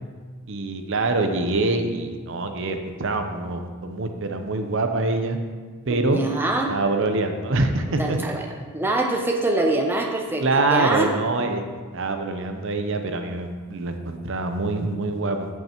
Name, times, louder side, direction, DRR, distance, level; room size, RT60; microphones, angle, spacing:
voice 1, 0.5-5.4 5.9-6.2 6.7-8.4 10.4-11.6 11.9-15.5, right 2 dB, 60° right, 6 dB, 0.7 m, -25 dB
voice 2, 5.9-6.7 8.0-8.4 8.7-11.1, right 2 dB, 10° right, 1 dB, 0.6 m, -24 dB
15.5 x 5.5 x 3.0 m, 1.5 s
head